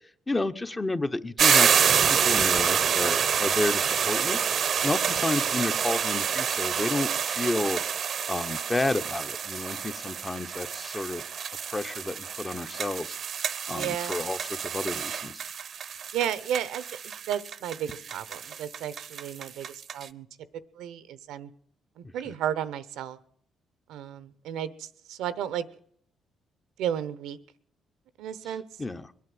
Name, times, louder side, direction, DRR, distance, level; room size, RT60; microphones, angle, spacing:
voice 1, 0.3-1.7 2.0-7.8 8.3-11.2 11.7-15.4 22.3-22.4 28.8-29.1, left 2 dB, 20° left, 9 dB, 0.9 m, -31 dB
sound 1, 1.4-20.1, right 7 dB, 55° right, 0.7 m, -27 dB
voice 2, 13.7-14.2 16.1-20.3 20.8-21.5 22.0-23.2 23.9-25.6 26.8-27.4 28.2-28.6, right 10 dB, 90° right, 15 dB, 0.8 m, -33 dB
22.0 x 8.5 x 7.8 m, 0.65 s
cardioid pair, 90°, 0 cm